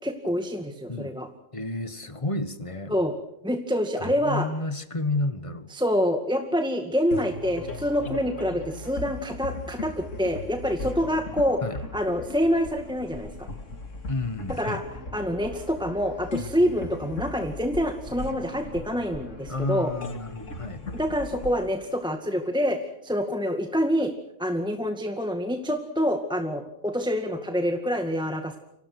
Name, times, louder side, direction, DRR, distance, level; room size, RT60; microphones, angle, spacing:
voice 1, 0.0-1.3 2.9-3.1 3.4-4.5 5.7-11.6 11.9-13.5 14.6-14.8 15.1-19.9 20.9-24.1 24.4-28.6, equal, 5° right, 5 dB, 1.9 m, -26 dB
voice 2, 1.5-3.0 4.0-5.7 11.6-11.8 14.1-14.8 19.5-20.9, left 2 dB, 20° left, 12 dB, 1.5 m, -31 dB
sound 1, 7.1-22.7, left 3 dB, 50° left, 2.9 m, -38 dB
29.5 x 25.5 x 6.2 m, 0.81 s
omnidirectional pair, 1.7 m